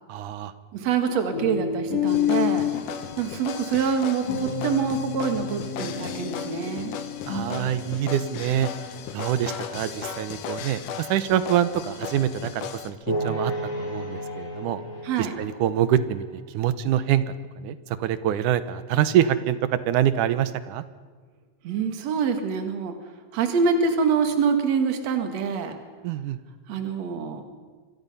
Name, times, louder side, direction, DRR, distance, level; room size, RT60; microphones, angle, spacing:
voice 1, 0.1-0.5 7.2-8.7 9.1-14.8 15.2-20.8 26.0-26.4, right 10 dB, 80° right, 13 dB, 2.4 m, -25 dB
voice 2, 0.7-2.7 3.2-7.0 15.0-15.3 21.6-22.9 23.3-25.8 26.7-27.4, right 6 dB, 60° right, 6 dB, 2.9 m, -25 dB
sound 1, 1.3-3.3 4.2-9.1, left 8 dB, 55° left, 3.9 m, -29 dB
sound 2, 2.1-12.9, left 8 dB, 80° left, 2.9 m, -37 dB
sound 3, 13.1-16.4, equal, 20° left, 3.4 m, -32 dB
27.0 x 23.0 x 5.6 m, 1.4 s
omnidirectional pair, 3.7 m